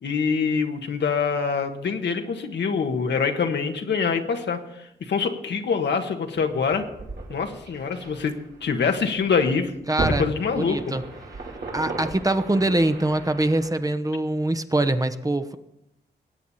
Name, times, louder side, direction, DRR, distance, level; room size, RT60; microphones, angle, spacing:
voice 1, 0.0-6.9 7.3-8.4 8.6-9.7 10.2-10.8, left 5 dB, 75° left, 5 dB, 1.4 m, -25 dB
sound 1, 6.4-13.7, right 2 dB, 70° right, 3.2 m, -35 dB
voice 2, 9.9-10.3 10.5-11.0 11.7-15.6, right 1 dB, 20° right, 9 dB, 1.1 m, -23 dB
20.0 x 8.4 x 4.2 m, 0.82 s
cardioid pair, 55°, 18 cm